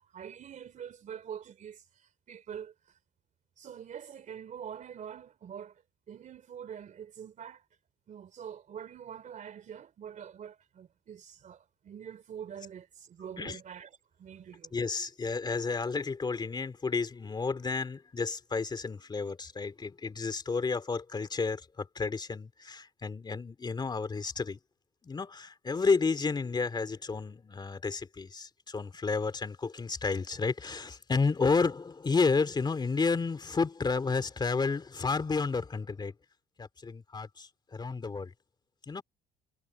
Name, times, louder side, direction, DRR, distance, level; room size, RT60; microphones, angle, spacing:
voice 1, 0.0-2.7 3.6-5.8 6.1-7.6 8.1-14.7, right 8 dB, 50° right, 3.0 m, -45 dB
voice 2, 14.7-24.6 25.0-36.1 36.6-38.3 38.9-39.0, left 4 dB, 25° left, 2.7 m, -31 dB
cardioid pair, 110°, 17 cm